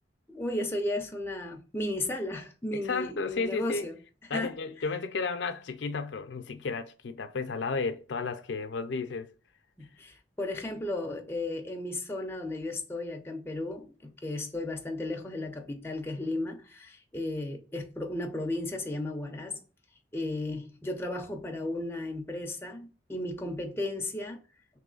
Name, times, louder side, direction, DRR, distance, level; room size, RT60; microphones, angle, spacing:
voice 1, 0.3-4.0 4.2-4.6 9.8-19.6 20.1-24.4, left 1 dB, 15° left, 0.4 m, -34 dB
voice 2, 2.7-3.9 4.3-9.3, left 4 dB, 75° left, 0.4 m, -33 dB
3.1 x 3.0 x 3.8 m
head